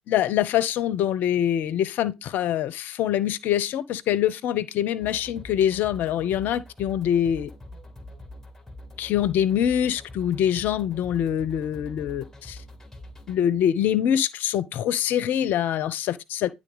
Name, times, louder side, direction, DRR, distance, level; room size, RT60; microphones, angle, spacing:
voice 1, 0.1-7.5 9.0-12.6 13.3-16.5, left 10 dB, 70° left, 0.6 m, -24 dB
sound 1, 5.0-13.4, left 1 dB, 10° left, 2.3 m, -44 dB
10.5 x 3.6 x 3.9 m
hypercardioid pair, 50°, 3 cm